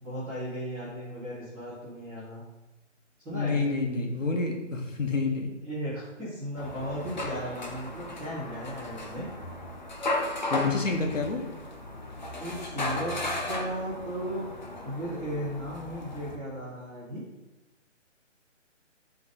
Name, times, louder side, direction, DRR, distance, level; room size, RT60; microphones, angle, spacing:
voice 1, 0.0-2.4 3.2-3.8 5.6-9.3 12.3-13.2 13.5-14.4 14.8-17.2, equal, 5° right, -15 dB, 0.9 m, -36 dB
voice 2, 3.3-5.5 10.5-11.4, left 3 dB, 85° left, 1 dB, 1.6 m, -28 dB
sound 1, 6.6-16.4, left 2 dB, 40° left, 0.6 m, -35 dB
8.1 x 3.8 x 3.8 m, 1.0 s
hypercardioid pair, 165°, 37 cm